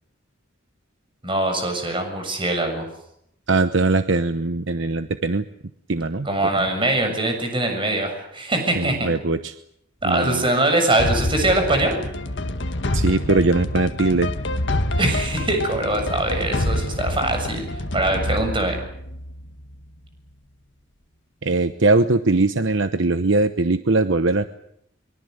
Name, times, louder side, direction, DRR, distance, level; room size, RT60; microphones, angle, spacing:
voice 1, 1.2-2.9 6.2-9.1 10.0-12.0 15.0-18.8, right 2 dB, 25° right, 5 dB, 7.1 m, -22 dB
voice 2, 3.5-5.4 5.9-6.3 8.7-9.6 10.0-10.4 12.9-14.3 21.4-24.5, right 3 dB, 65° right, 10 dB, 1.0 m, -20 dB
sound 1, 11.0-19.8, left 1 dB, 60° left, 1.7 m, -26 dB
24.5 x 23.5 x 8.0 m, 0.76 s
head